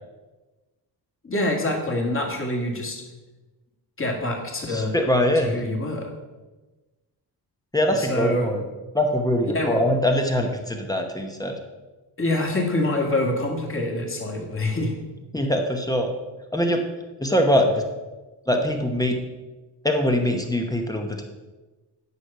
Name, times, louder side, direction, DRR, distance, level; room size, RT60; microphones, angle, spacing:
voice 1, 1.2-3.0 4.0-4.9 5.4-6.1 7.9-8.5 9.5-9.8 12.2-14.9, left 1 dB, 30° left, 1 dB, 2.1 m, -25 dB
voice 2, 4.7-5.5 7.7-8.6 8.9-11.6 15.3-16.1 16.5-16.8 17.2-17.8 18.5-19.2 19.8-21.2, left 1 dB, 10° left, 3 dB, 1.0 m, -22 dB
9.7 x 6.5 x 5.5 m, 1.2 s
wide cardioid pair, 140°, 41 cm